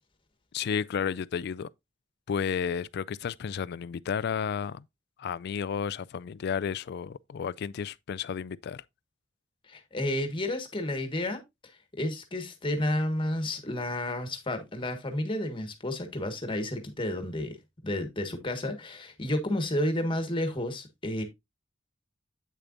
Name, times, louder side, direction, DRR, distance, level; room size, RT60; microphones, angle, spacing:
voice 1, 0.5-1.7 2.3-4.8 5.2-8.8, left 7 dB, 55° left, 0.3 m, -32 dB
voice 2, 9.7-11.4 12.0-17.5 17.8-21.2, left 1 dB, 25° left, 1.5 m, -31 dB
8.5 x 6.7 x 2.6 m
head